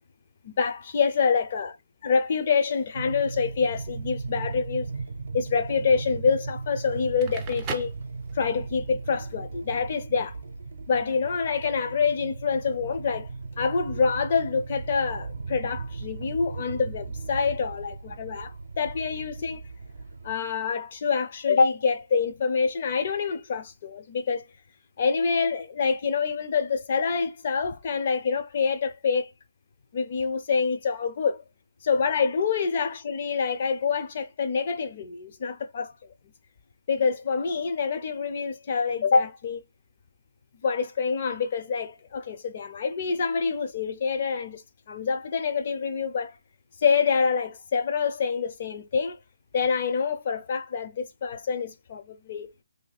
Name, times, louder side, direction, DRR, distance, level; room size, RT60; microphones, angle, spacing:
voice 1, 0.4-1.7 2.0-4.9 5.3-7.9 8.3-10.4 10.9-13.3 13.6-19.6 20.2-24.4 25.0-29.3 29.9-31.4 31.8-35.9 36.9-39.6 40.6-44.6 44.9-46.4 46.8-49.2 49.5-52.5, left 5 dB, 35° left, 0.5 m, -26 dB
sound 1, 2.9-20.4, right 4 dB, 65° right, 0.6 m, -37 dB
Crackle, 7.0-8.7, right 5 dB, 15° right, 0.4 m, -38 dB
2.6 x 2.4 x 4.0 m
hypercardioid pair, 165°, 0 cm